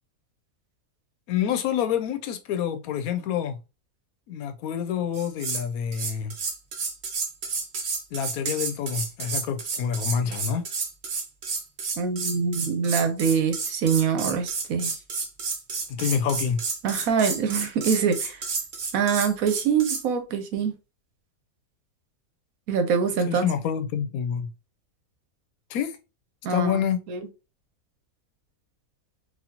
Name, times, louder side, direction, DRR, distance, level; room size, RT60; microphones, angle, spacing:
voice 1, 1.3-3.6 4.3-6.3 8.1-10.7 15.9-16.6 23.2-24.5 25.7-26.0 26.5-27.0, left 8 dB, 80° left, 1.0 m, -27 dB
sound 1, 5.1-5.6 5.9-20.0, right 4 dB, 50° right, 1.0 m, -31 dB
voice 2, 12.0-14.9 16.8-18.4 18.9-20.7 22.7-23.5 26.4-26.8 27.1-27.2, right 6 dB, 75° right, 1.1 m, -24 dB
4.1 x 2.6 x 2.8 m
omnidirectional pair, 1.5 m